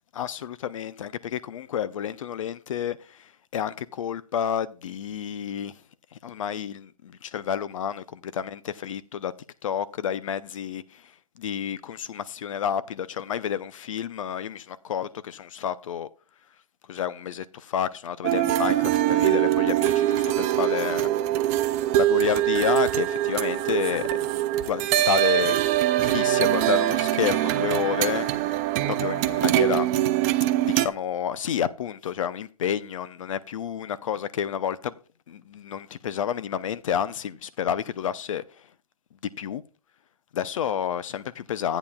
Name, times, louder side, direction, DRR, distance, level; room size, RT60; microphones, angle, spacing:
voice 1, 0.1-9.3 9.6-16.1 16.8-21.1 21.9-25.6 26.0-28.3 29.0-30.1 30.6-35.0 35.3-38.7 39.1-39.6 40.3-41.8, left 9 dB, 55° left, 0.6 m, -30 dB
sound 1, 18.2-30.9, right 13 dB, 25° right, 0.5 m, -23 dB
13.5 x 9.0 x 2.3 m
hypercardioid pair, 145°, 19 cm